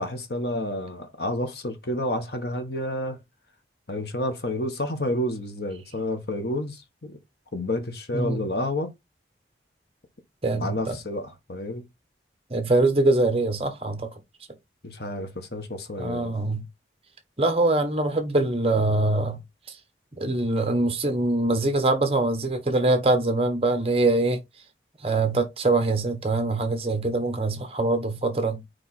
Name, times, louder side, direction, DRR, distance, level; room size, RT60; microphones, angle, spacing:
voice 1, 0.0-3.2 3.9-7.2 7.5-8.9 10.5-11.8 14.8-16.3, left 1 dB, 70° left, 1.4 m, -30 dB
voice 2, 10.4-11.0 12.5-14.1 16.0-16.6 17.4-19.4 20.2-24.4 25.0-28.6, right 2 dB, 35° right, 1.2 m, -23 dB
5.0 x 4.8 x 4.3 m
head